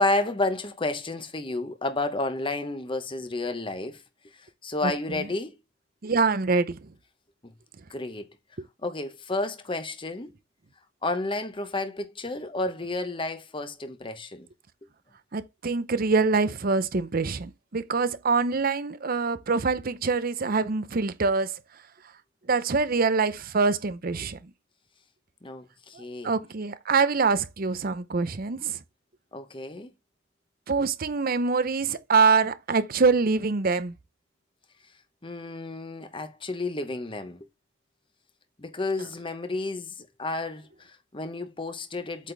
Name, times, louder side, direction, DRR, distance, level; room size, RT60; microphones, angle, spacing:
voice 1, 0.0-4.0 4.6-5.5 7.9-8.2 8.8-10.3 11.0-14.5 25.4-26.3 29.3-29.9 35.2-37.5 38.6-42.3, left 2 dB, 25° left, 1.0 m, -31 dB
voice 2, 4.8-5.3 6.0-6.8 8.6-8.7 15.3-21.6 22.5-24.4 26.0-28.8 30.7-33.9, right 4 dB, 45° right, 0.6 m, -25 dB
8.3 x 4.2 x 3.3 m
head